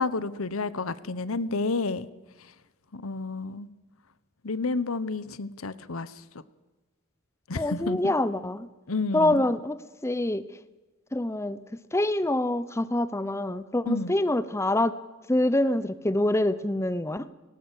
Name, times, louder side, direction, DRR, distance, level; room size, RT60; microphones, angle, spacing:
voice 1, 0.0-2.1 2.9-3.7 4.4-6.1 7.5-8.1 8.9-9.4 13.9-14.2, left 3 dB, 75° left, 16 dB, 1.0 m, -30 dB
voice 2, 7.6-8.7 9.1-9.8 10.0-10.4 11.1-11.6 11.9-14.9 15.3-17.3, left 1 dB, 10° left, 14 dB, 0.6 m, -25 dB
18.0 x 18.0 x 8.3 m, 1.1 s
head